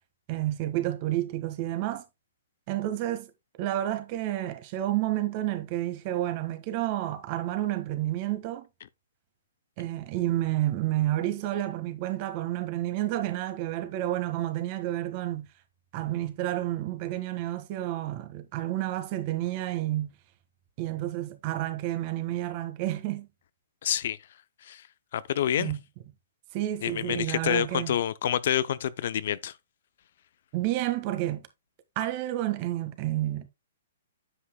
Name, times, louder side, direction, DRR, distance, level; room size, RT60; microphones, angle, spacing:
voice 1, 0.3-2.0 2.7-3.3 3.6-8.7 9.8-15.5 15.9-20.1 20.8-23.3 25.6-25.8 26.5-28.0 30.5-31.5 31.9-33.5, right 14 dB, 40° right, 1.5 m, -30 dB
voice 2, 23.8-24.2 24.6-24.8 25.1-25.7 26.8-29.5, left 10 dB, 60° left, 0.5 m, -28 dB
9.7 x 7.9 x 2.2 m
hypercardioid pair, 130°, 0 cm